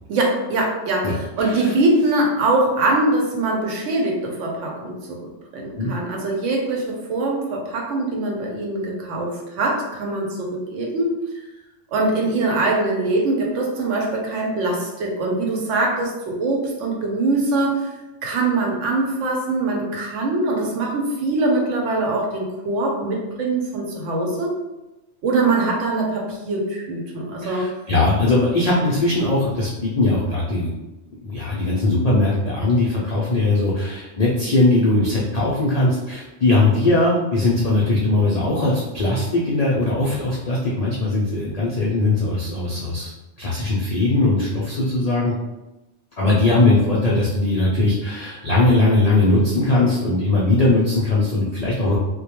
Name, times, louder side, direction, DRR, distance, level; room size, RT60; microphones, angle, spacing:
voice 1, 0.1-5.2 5.5-11.2 11.9-17.9 18.2-24.6 25.2-27.7, right 2 dB, 85° right, -1 dB, 1.0 m, -22 dB
voice 2, 1.4-1.7 5.8-5.9 27.4-30.7 31.2-43.1 43.4-45.3 46.2-52.0, left 2 dB, 75° left, -5 dB, 0.3 m, -20 dB
2.2 x 2.1 x 2.9 m, 1.0 s
omnidirectional pair, 1.2 m